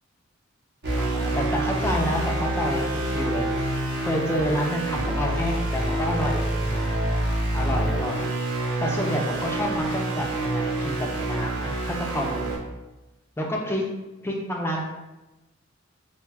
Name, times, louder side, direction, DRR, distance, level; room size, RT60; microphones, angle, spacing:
sound 1, 0.8-12.6, right 1 dB, 55° right, 0.7 m, -27 dB
voice 1, 1.0-3.5 4.0-6.9 7.5-8.3 8.8-12.7 13.4-13.8 14.2-14.8, equal, 10° left, -1 dB, 0.3 m, -29 dB
2.4 x 2.2 x 3.3 m, 1.0 s
head